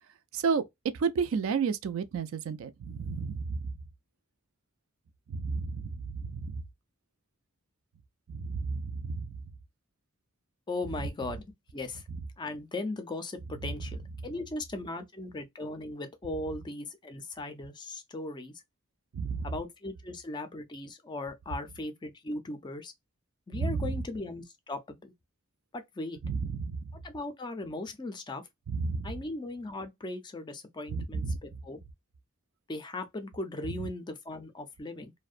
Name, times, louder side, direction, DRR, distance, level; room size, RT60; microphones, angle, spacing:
voice 1, 0.3-0.6 1.0-3.7 5.3-6.6 8.3-9.3 19.1-19.5 23.5-23.9 26.2-26.8 28.7-29.1 30.9-31.4, right 5 dB, 65° right, 0.3 m, -31 dB
voice 2, 10.7-11.5 11.7-12.0 12.4-18.6 19.4-22.9 23.5-25.1 25.7-26.2 27.0-28.4 29.0-31.8 32.7-35.1, left 2 dB, 20° left, 0.4 m, -38 dB
2.5 x 2.1 x 2.4 m
head